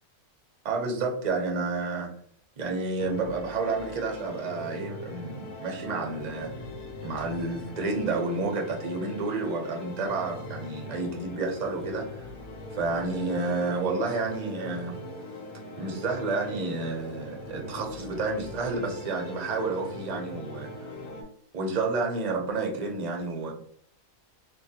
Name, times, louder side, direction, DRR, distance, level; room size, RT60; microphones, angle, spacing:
voice 1, 0.6-2.1 2.6-6.5 7.0-12.2 12.7-15.0 15.8-20.7 21.5-23.5, right 3 dB, 45° right, 0 dB, 0.6 m, -30 dB
sound 1, 3.0-21.2, left 2 dB, 90° left, 1.1 m, -41 dB
3.5 x 2.3 x 2.7 m, 0.63 s
omnidirectional pair, 1.4 m